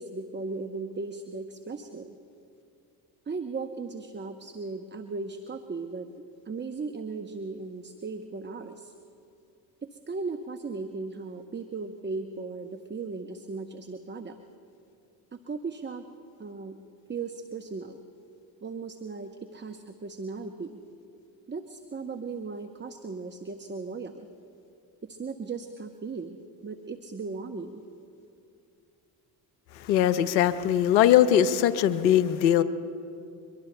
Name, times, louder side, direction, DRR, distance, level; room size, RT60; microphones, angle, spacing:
voice 1, 0.0-2.1 3.3-6.1 6.5-8.9 9.9-14.4 15.5-16.0 16.4-16.8 17.1-18.0 18.6-20.8 21.5-24.3 25.0-26.4 26.6-27.8, right 4 dB, 20° right, 7 dB, 0.9 m, -37 dB
voice 2, 29.8-32.6, left 11 dB, 90° left, 14 dB, 0.7 m, -21 dB
23.5 x 22.5 x 2.2 m, 2.6 s
hypercardioid pair, 55°, 50 cm